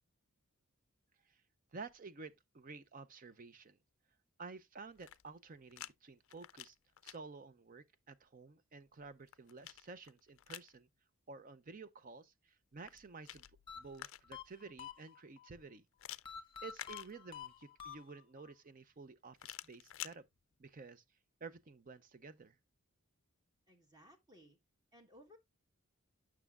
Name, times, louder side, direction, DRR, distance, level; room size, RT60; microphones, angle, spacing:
voice 1, 1.7-3.8 4.4-6.8 7.0-10.9 11.3-13.4 13.8-15.8 16.6-20.2 20.6-21.0 21.4-22.6, right 4 dB, 40° right, 0.5 m, -52 dB
sound 1, 4.9-5.9 6.2-7.2 8.9-10.7 12.7-14.5 16.0-17.6 19.4-20.2, left 13 dB, 65° left, 0.4 m, -51 dB
sound 2, 13.7-15.5 16.2-18.5, left 8 dB, 25° left, 1.1 m, -49 dB
voice 2, 23.7-24.6 24.9-25.4, equal, 20° right, 1.3 m, -61 dB
9.2 x 6.0 x 2.3 m
head